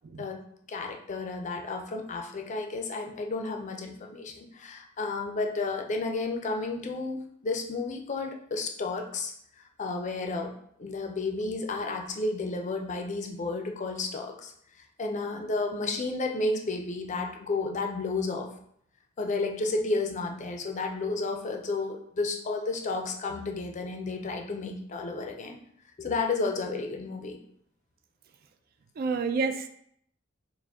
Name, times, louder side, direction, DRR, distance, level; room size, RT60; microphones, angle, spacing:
voice 1, 0.2-9.3 9.8-14.5 15.0-18.5 19.2-25.6 26.0-27.4, left 3 dB, 35° left, 3 dB, 0.5 m, -32 dB
voice 2, 29.0-29.7, right 4 dB, 45° right, 9 dB, 0.3 m, -29 dB
4.7 x 2.1 x 3.5 m, 0.67 s
head